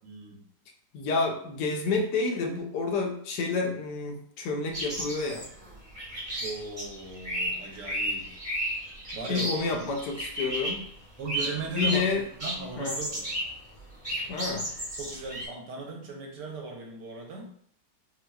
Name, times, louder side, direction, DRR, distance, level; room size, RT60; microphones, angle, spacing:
voice 1, 0.0-0.4 6.4-8.8 9.1-9.9 11.2-12.0 12.4-13.3 15.0-17.5, right 4 dB, 75° right, 0 dB, 1.3 m, -38 dB
voice 2, 0.9-5.5 9.3-10.8 11.8-12.2 12.8-13.0 14.3-14.7, left 4 dB, 75° left, 2 dB, 1.1 m, -29 dB
sound 1, 4.7-10.9 11.3-12.1 12.4-13.5 13.8-15.5, right 1 dB, 15° right, 1.1 m, -33 dB
4.3 x 2.2 x 2.3 m, 0.62 s
omnidirectional pair, 1.9 m